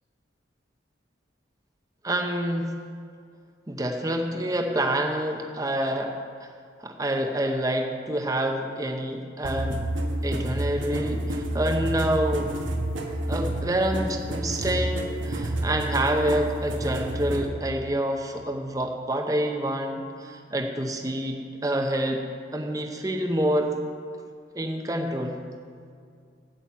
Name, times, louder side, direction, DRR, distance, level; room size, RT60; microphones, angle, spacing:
voice 1, 2.0-2.8 3.7-6.1 6.4-6.5 6.8-9.8 10.2-12.6 13.3-22.2 22.5-23.7 24.5-25.4, right 1 dB, 20° right, 3 dB, 0.7 m, -27 dB
sound 1, 9.4-17.5, right 1 dB, 90° right, 1.3 m, -29 dB
8.8 x 7.7 x 8.2 m, 2.3 s
head